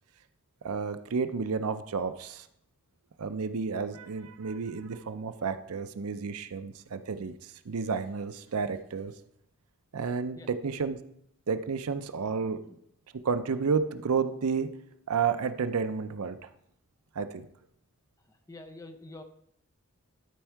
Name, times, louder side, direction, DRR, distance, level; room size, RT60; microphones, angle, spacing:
voice 1, 0.6-2.5 3.2-9.1 9.9-11.0 11.5-12.6 13.2-14.7 15.1-16.5 17.1-17.4, right 5 dB, 85° right, 11 dB, 0.6 m, -31 dB
voice 2, 12.3-12.8 18.3-19.2, left 2 dB, 15° left, 7 dB, 0.6 m, -48 dB
12.5 x 4.4 x 4.6 m, 0.72 s
head